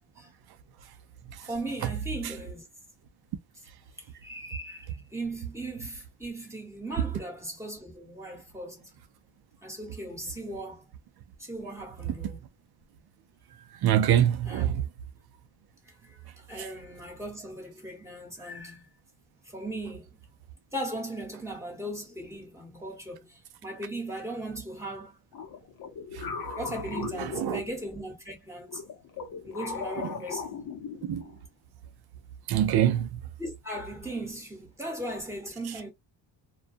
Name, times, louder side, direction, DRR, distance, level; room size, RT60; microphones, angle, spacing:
voice 1, 1.5-2.7 4.0-8.9 9.6-10.8 11.4-12.5 14.5-14.7 16.0-18.9 19.4-20.2 20.7-25.2 26.5-28.8 29.4-30.6 33.4-35.9, right 1 dB, 5° right, 1.2 m, -38 dB
voice 2, 13.8-14.9 16.6-16.7 26.1-26.2 27.3-27.6 31.1-31.2 32.5-33.2, right 10 dB, 55° right, 0.6 m, -24 dB
sound 1, 25.3-28.1 28.7-31.4, left 6 dB, 50° left, 0.8 m, -38 dB
2.3 x 2.3 x 2.5 m
cardioid pair, 105°, 46 cm